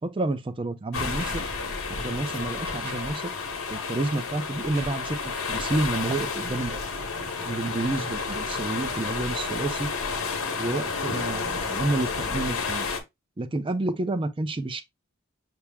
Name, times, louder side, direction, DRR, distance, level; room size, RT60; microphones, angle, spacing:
voice 1, 0.0-1.5 1.9-3.3 3.7-6.8 7.4-9.9 10.5-12.9 13.4-14.8, right 2 dB, 25° right, 0.4 m, -29 dB
sound 1, 0.9-13.0, left 4 dB, 80° left, 1.0 m, -31 dB
sound 2, 1.0-5.6 7.2-7.3, right 2 dB, 55° right, 3.3 m, -48 dB
5.9 x 2.0 x 3.3 m
head